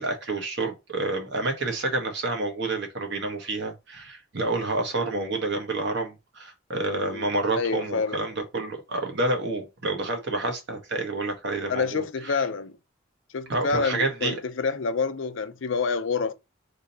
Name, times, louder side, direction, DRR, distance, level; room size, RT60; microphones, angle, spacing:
voice 1, 0.0-12.4 13.5-14.3, right 2 dB, 65° right, 1.2 m, -29 dB
voice 2, 6.9-7.3 7.6-8.2 11.7-12.7 13.3-16.3, left 4 dB, 70° left, 0.5 m, -27 dB
3.6 x 2.7 x 4.1 m
head